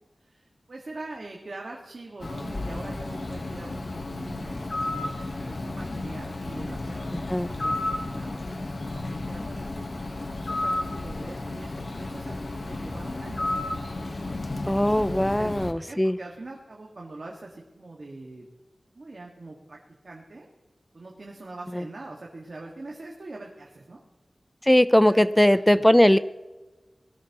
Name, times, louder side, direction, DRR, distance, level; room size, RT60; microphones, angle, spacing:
voice 1, 0.2-5.1 5.4-14.8 15.1-18.5 18.9-19.8 20.0-20.5 20.9-24.0 24.9-25.2 25.5-25.8 26.1-26.2, right 2 dB, 60° right, -1 dB, 1.7 m, -43 dB
Bird, 2.2-15.7, left 2 dB, 60° left, 1.2 m, -32 dB
voice 2, 14.7-16.2 21.7-21.8 24.6-26.2, left 1 dB, 10° left, 15 dB, 0.5 m, -19 dB
19.5 x 13.0 x 3.0 m, 1.2 s
wide cardioid pair, 70°, 0 cm